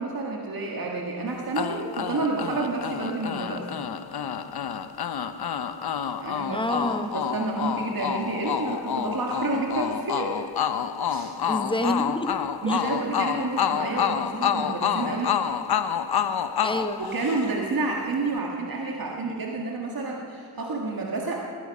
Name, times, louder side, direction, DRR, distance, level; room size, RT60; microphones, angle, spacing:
voice 1, 0.0-3.7 6.2-10.4 11.1-11.3 12.6-15.4 17.0-21.5, right 3 dB, 55° right, -1 dB, 1.8 m, -29 dB
sound 1, 1.6-17.7, left 8 dB, 65° left, 0.8 m, -28 dB
voice 2, 6.5-7.1 11.5-12.8 16.6-17.0, left 1 dB, 10° left, 7 dB, 1.2 m, -28 dB
20.0 x 10.5 x 5.4 m, 3.0 s
cardioid pair, 50°, 41 cm